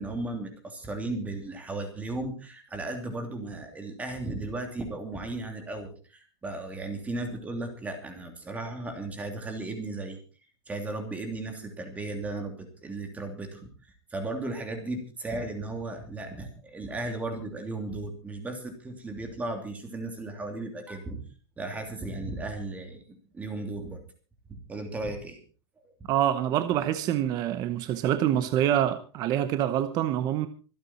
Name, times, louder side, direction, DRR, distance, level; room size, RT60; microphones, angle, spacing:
voice 1, 0.0-10.2 10.7-21.2 21.6-24.0 24.5-25.4 25.8-25.9, right 2 dB, 10° right, 2.9 m, -35 dB
voice 2, 26.1-30.5, right 11 dB, 30° right, 0.8 m, -26 dB
25.5 x 8.8 x 4.2 m
supercardioid pair, 170°, 14 cm